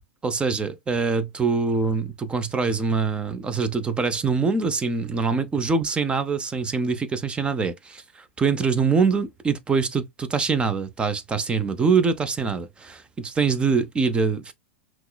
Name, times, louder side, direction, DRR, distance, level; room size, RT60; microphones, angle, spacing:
voice 1, 0.2-14.5, right 5 dB, 15° right, 0.7 m, -24 dB
5.6 x 3.1 x 2.3 m
figure-of-eight pair, 95°, 6 cm